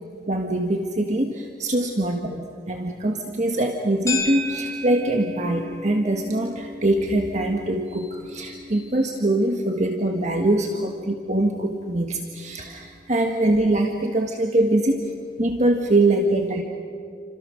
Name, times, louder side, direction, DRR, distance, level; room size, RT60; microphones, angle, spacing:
voice 1, 0.3-15.0 15.4-16.6, right 1 dB, 40° right, 3 dB, 1.5 m, -23 dB
sound 1, 4.1-12.5, left 2 dB, 20° left, 4.7 m, -36 dB
29.5 x 26.0 x 6.4 m, 2.2 s
head